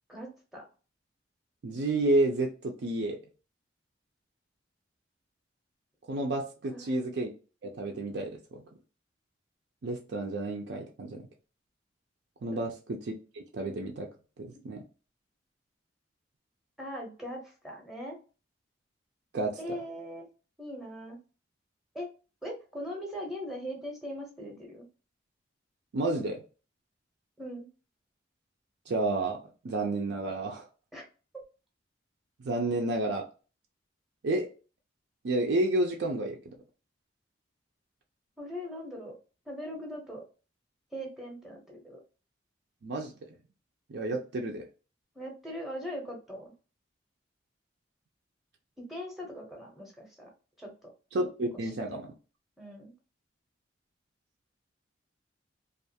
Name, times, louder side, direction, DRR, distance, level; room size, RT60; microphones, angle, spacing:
voice 1, 0.1-0.6 6.7-7.0 12.5-12.6 16.8-18.2 19.6-20.3 20.6-21.2 21.9-22.1 22.4-24.9 27.4-27.7 30.9-31.1 31.3-31.4 38.4-39.2 39.5-40.2 40.9-42.0 45.1-46.5 48.8-50.3 50.6-50.9 51.7-52.1 52.6-52.9, equal, ahead, 0 dB, 0.7 m, -40 dB
voice 2, 1.6-3.2 6.1-7.3 7.6-8.6 9.8-11.2 12.4-12.7 13.3-14.1 14.4-14.8 19.3-19.6 25.9-26.4 28.9-30.7 32.4-33.2 34.2-34.5 35.2-36.4 42.8-43.1 43.9-44.6 51.1-52.1, right 2 dB, 65° right, 1 dB, 0.4 m, -30 dB
2.4 x 2.3 x 2.7 m, 0.34 s
head